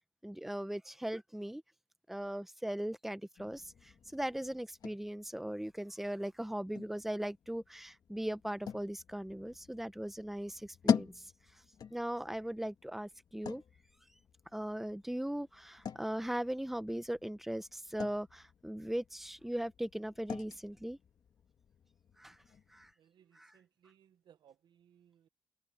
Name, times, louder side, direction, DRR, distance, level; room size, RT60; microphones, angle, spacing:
voice 1, 0.2-1.6 2.1-11.2 11.9-13.6 14.5-21.0 22.2-22.4 22.7-22.9 23.3-23.6, right 1 dB, 5° right, 1.0 m, -39 dB
sound 1, 3.4-22.9, left 7 dB, 55° left, 1.9 m, -43 dB
voice 2, 23.0-25.3, right 9 dB, 70° right, 1.0 m, -65 dB
cardioid pair, 95°, 8 cm